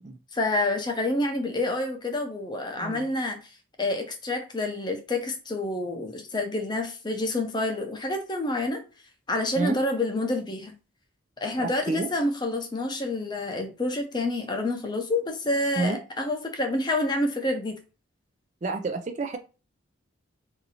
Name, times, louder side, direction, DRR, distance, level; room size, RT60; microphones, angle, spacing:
voice 1, 0.3-3.4 3.8-8.8 9.3-10.7 11.4-17.8, left 2 dB, 20° left, 4 dB, 0.6 m, -28 dB
voice 2, 11.6-12.1 15.8-16.0 18.6-19.4, right 3 dB, 35° right, 5 dB, 0.4 m, -29 dB
2.8 x 2.6 x 4.0 m, 0.32 s
head